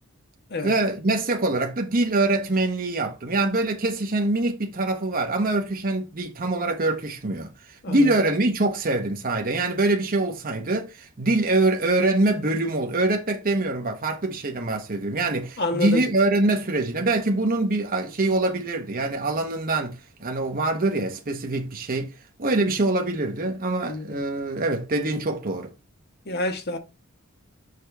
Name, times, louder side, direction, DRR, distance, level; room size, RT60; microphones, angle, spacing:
voice 1, 0.6-22.1 22.4-25.7, right 2 dB, 40° right, 1.0 m, -24 dB
voice 2, 15.6-16.0 23.8-24.2 26.3-26.8, left 2 dB, 50° left, 1.3 m, -28 dB
6.7 x 5.5 x 3.4 m
head